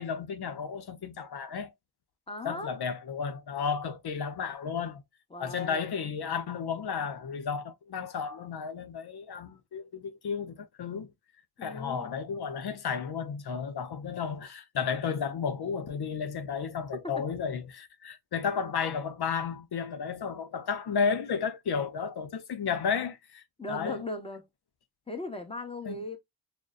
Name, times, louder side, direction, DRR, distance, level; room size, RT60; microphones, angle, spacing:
voice 1, 0.0-1.7 2.4-5.0 5.4-11.1 11.6-24.0 25.9-26.0, left 6 dB, 80° left, 0.7 m, -33 dB
voice 2, 2.3-2.7 5.3-5.8 11.6-12.2 23.6-24.5 25.1-26.2, left 2 dB, 15° left, 1.1 m, -38 dB
6.3 x 2.2 x 2.4 m
wide cardioid pair, 80°, 38 cm